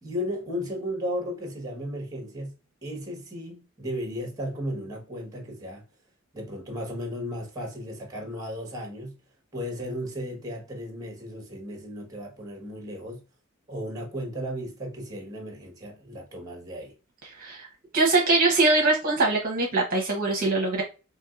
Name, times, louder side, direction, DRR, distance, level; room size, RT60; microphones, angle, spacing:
voice 1, 0.0-2.5 2.8-5.8 6.3-9.1 9.5-13.2 13.7-16.9, equal, 15° right, 1.2 m, -35 dB
voice 2, 17.9-20.8, right 3 dB, 40° right, 0.9 m, -22 dB
4.5 x 2.9 x 2.4 m
head